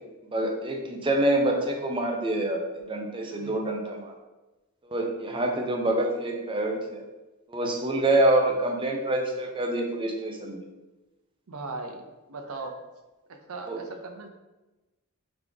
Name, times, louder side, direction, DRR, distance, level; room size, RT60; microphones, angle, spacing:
voice 1, 0.3-4.1 4.9-7.0 7.5-10.6 13.7-13.8, right 1 dB, 20° right, 1 dB, 0.5 m, -26 dB
voice 2, 11.5-12.0 12.3-12.7 13.3-14.3, right 3 dB, 70° right, 5 dB, 0.6 m, -38 dB
3.9 x 3.5 x 3.3 m, 1.1 s
head